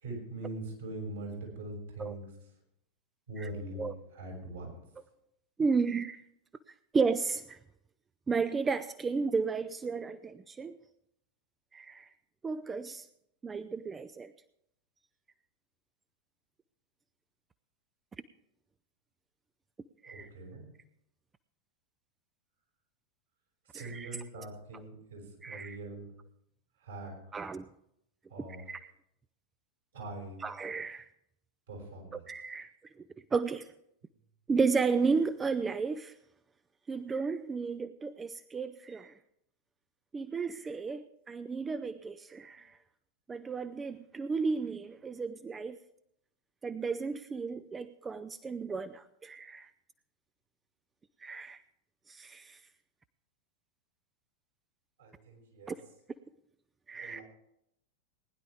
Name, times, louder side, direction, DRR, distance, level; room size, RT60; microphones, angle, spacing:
voice 1, 0.0-2.2 3.3-4.8 20.0-20.7 23.7-26.1 26.8-27.1 28.3-28.6 29.9-30.4 31.7-32.2 55.0-55.7 57.0-57.2, right 2 dB, 65° right, -1 dB, 6.1 m, -42 dB
voice 2, 5.6-6.2 6.9-7.6 8.3-10.8 11.7-12.1 12.4-13.1 13.4-14.3 20.0-20.3 23.7-24.5 25.4-25.8 27.3-27.7 28.7-28.9 30.4-31.1 32.1-32.7 33.3-33.7 34.5-36.1 36.9-39.2 40.1-42.8 43.3-45.8 46.6-49.7 51.2-51.6 52.1-52.6 55.7-55.8 56.9-57.2, right 4 dB, 15° right, 14 dB, 0.4 m, -33 dB
19.5 x 10.5 x 3.5 m, 0.77 s
figure-of-eight pair, 90°, 0 cm